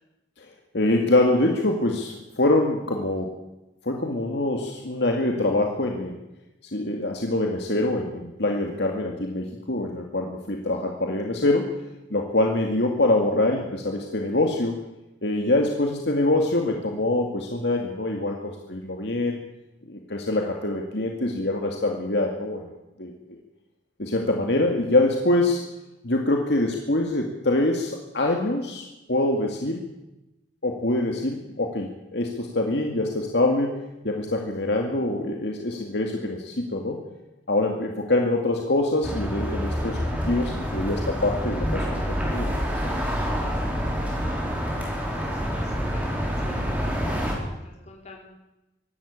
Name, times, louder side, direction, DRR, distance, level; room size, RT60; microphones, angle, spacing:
voice 1, 0.7-3.4 3.8-6.2 6.7-11.7 12.1-14.8 15.2-19.4 19.9-23.4 24.0-25.6 26.0-29.8 30.6-37.0 37.5-40.0 40.2-43.0, left 2 dB, 65° left, 1 dB, 2.3 m, -25 dB
sound 1, 39.0-47.3, equal, 10° right, 4.6 m, -27 dB
voice 2, 44.7-48.2, left 2 dB, 35° left, 0 dB, 5.0 m, -47 dB
24.0 x 12.5 x 8.8 m, 0.97 s
head